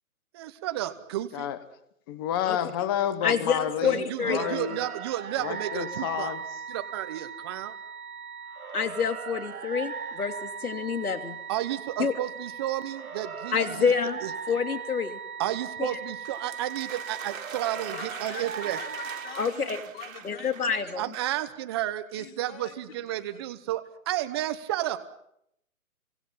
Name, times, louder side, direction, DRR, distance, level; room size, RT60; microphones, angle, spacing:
voice 1, 0.3-1.5 3.8-6.4 6.7-7.7 11.5-13.9 14.2-14.3 15.4-18.8 21.0-25.0, right 13 dB, 20° right, 0.9 m, -32 dB
voice 2, 2.1-4.0 4.2-4.9 5.4-6.4, left 10 dB, 15° left, 1.0 m, -30 dB
voice 3, 3.2-4.5 8.7-11.4 12.0-12.1 13.5-14.2 14.5-15.2 15.8-15.9 19.4-19.8 20.2-21.1, left 6 dB, 85° left, 3.1 m, -27 dB
sound 1, 4.2-19.5, right 6 dB, 80° right, 3.4 m, -39 dB
sound 2, 16.2-21.4, right 7 dB, 65° right, 2.6 m, -42 dB
voice 4, 17.9-20.8 22.1-23.4, left 9 dB, 40° left, 4.2 m, -45 dB
30.0 x 24.0 x 5.7 m
hypercardioid pair, 155°, 43 cm